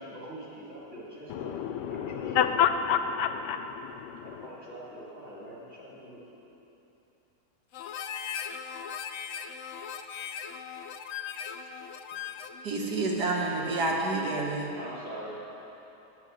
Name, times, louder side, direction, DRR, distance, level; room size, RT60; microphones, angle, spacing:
voice 1, 0.0-1.6 1.9-2.4 4.2-6.2 14.8-15.4, right 1 dB, 45° right, -7 dB, 3.5 m, -43 dB
voice 2, 1.3-4.5, left 8 dB, 85° left, 8 dB, 1.3 m, -29 dB
Harmonica, 7.7-12.6, left 7 dB, 65° left, 0.8 m, -38 dB
voice 3, 12.6-14.7, right 2 dB, 70° right, -2 dB, 2.2 m, -29 dB
9.2 x 8.8 x 8.9 m, 3.0 s
omnidirectional pair, 1.8 m